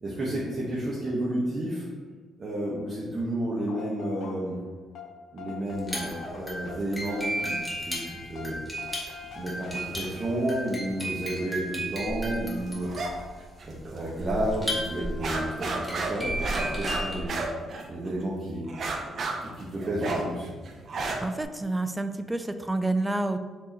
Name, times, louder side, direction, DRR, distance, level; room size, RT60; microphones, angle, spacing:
voice 1, 0.0-1.9 2.4-4.6 5.3-8.0 8.3-8.6 9.3-12.9 13.6-17.4 17.9-18.7 19.4-20.5, right 1 dB, 40° right, -6 dB, 1.0 m, -31 dB
sound 1, 3.5-4.7 4.9-11.1, left 5 dB, 70° left, 0.8 m, -44 dB
sound 2, 5.7-17.3, right 1 dB, 5° left, 1.4 m, -34 dB
sound 3, 12.9-13.1 13.4-14.2 14.5-14.6 15.0-18.2 18.7-21.4, right 3 dB, 55° right, 0.6 m, -32 dB
voice 2, 21.2-23.4, right 2 dB, 10° right, 9 dB, 0.3 m, -28 dB
4.6 x 2.9 x 4.0 m, 1.4 s
cardioid pair, 90°, 0 cm